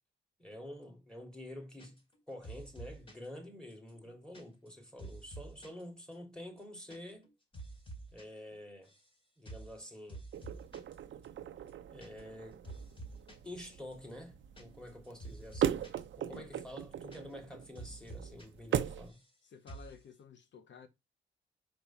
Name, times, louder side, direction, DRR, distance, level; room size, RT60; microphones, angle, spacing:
voice 1, 0.4-2.0 2.3-7.3 8.1-8.9 9.4-10.3 11.9-12.6 13.4-19.2, left 1 dB, 5° left, 3.1 m, -48 dB
sound 1, 1.8-2.2 2.4-3.3 3.7-5.8 6.1-6.2 6.5-7.0 7.2-8.3 8.5-9.1 9.5-9.8 10.1-11.0 11.2-11.3 11.6-12.4 12.6-13.5 13.9-16.0 16.3-16.4 16.7-17.5 17.8-18.5 18.7-19.4 19.7-20.0, right 2 dB, 30° left, 3.9 m, -49 dB
sound 2, 10.3-19.1, right 10 dB, 85° right, 0.7 m, -39 dB
voice 2, 19.4-20.9, left 7 dB, 75° left, 1.0 m, -53 dB
5.4 x 5.1 x 5.7 m
cardioid pair, 110°, 19 cm